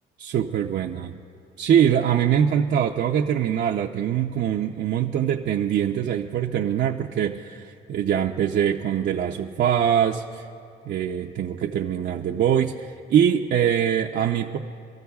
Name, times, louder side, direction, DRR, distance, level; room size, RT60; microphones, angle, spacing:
voice 1, 0.2-1.1 1.6-10.4 10.9-14.6, right 9 dB, 60° right, 0 dB, 0.6 m, -23 dB
26.0 x 13.5 x 2.4 m, 2.4 s
cardioid pair, 90°, 20 cm